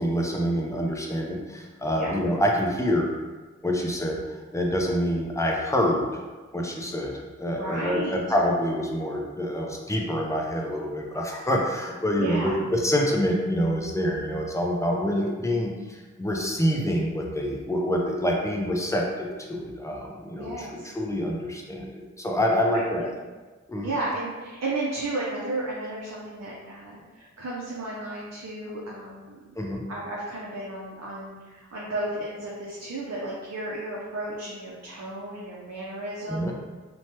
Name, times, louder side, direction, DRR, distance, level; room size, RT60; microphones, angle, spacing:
voice 1, 0.0-3.1 3.6-6.1 6.5-23.1 23.7-23.9 29.6-29.8 36.3-36.5, equal, 10° left, -1 dB, 0.5 m, -26 dB
voice 2, 7.5-8.2 12.2-12.6 20.4-20.9 22.7-23.1 23.8-29.4 29.9-36.5, right 2 dB, 55° right, -6 dB, 0.6 m, -33 dB
3.0 x 2.2 x 2.8 m, 1.3 s
wide cardioid pair, 45°, 31 cm